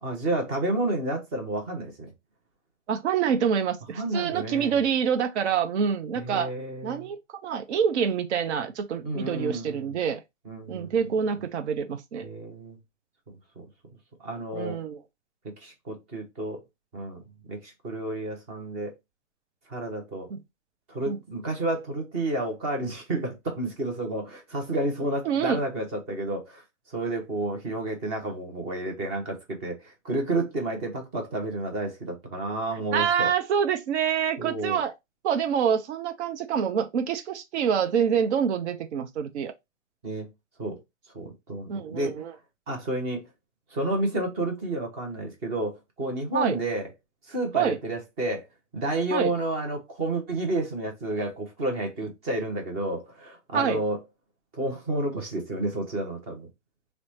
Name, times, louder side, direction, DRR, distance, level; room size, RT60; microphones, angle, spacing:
voice 1, 0.0-2.1 3.9-4.8 6.1-7.1 9.0-10.0 10.5-10.9 12.2-12.8 13.3-13.7 14.2-14.8 15.4-16.6 16.9-18.9 19.7-20.3 20.9-26.6 26.9-33.3 34.4-34.8 40.0-40.3 40.6-40.8 41.1-42.3 42.7-43.3 43.7-46.9 47.3-48.4 48.7-54.0 54.5-56.5, right 2 dB, 10° right, 0.4 m, -31 dB
voice 2, 2.9-6.5 6.8-10.2 10.7-12.2 14.5-15.0 20.3-20.4 21.1-21.2 25.3-25.6 32.9-34.9 35.2-39.5 41.7-42.3 46.3-46.6 47.5-47.8 49.1-49.3 53.5-53.8, right 7 dB, 65° right, 0.6 m, -26 dB
3.1 x 2.0 x 4.0 m
hypercardioid pair, 130°, 37 cm